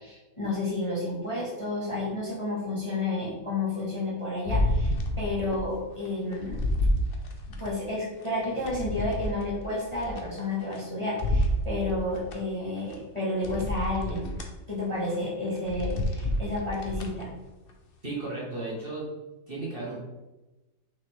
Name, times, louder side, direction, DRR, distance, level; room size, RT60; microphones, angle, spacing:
voice 1, 0.0-6.6 7.6-14.3 14.7-17.3, left 2 dB, 15° left, -6 dB, 1.9 m, -31 dB
sound 1, 4.5-5.7 6.0-7.7 8.2-10.8 11.2-12.4 12.9-13.0 13.4-14.5 15.0-15.2 15.6-17.2 17.7-17.8, left 1 dB, 45° left, 0.8 m, -29 dB
voice 2, 18.0-19.1 19.5-20.0, right 2 dB, 30° right, -6 dB, 2.3 m, -34 dB
6.6 x 5.7 x 3.6 m, 1.1 s
omnidirectional pair, 1.9 m